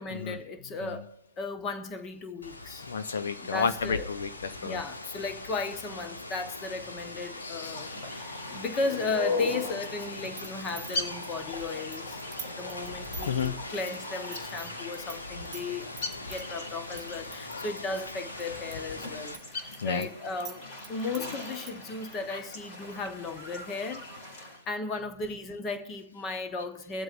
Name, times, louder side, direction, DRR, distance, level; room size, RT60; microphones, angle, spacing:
voice 1, 0.0-2.9 3.4-4.1 4.6-12.2 12.5-15.9 16.2-24.1 24.7-27.0, left 3 dB, 20° left, 1.0 m, -35 dB
Rain, 2.4-19.4, left 2 dB, 80° left, 1.7 m, -41 dB
voice 2, 2.9-4.8 7.4-7.9 13.3-13.5 17.5-17.7 19.8-20.1, left 6 dB, 60° left, 0.6 m, -32 dB
sound 1, 7.6-24.6, left 3 dB, 35° left, 3.6 m, -40 dB
sound 2, 10.0-15.2 15.4-16.4 17.0-18.7 19.1-21.9, right 6 dB, 10° right, 1.3 m, -45 dB
23.0 x 7.7 x 2.6 m
figure-of-eight pair, 135°, 0 cm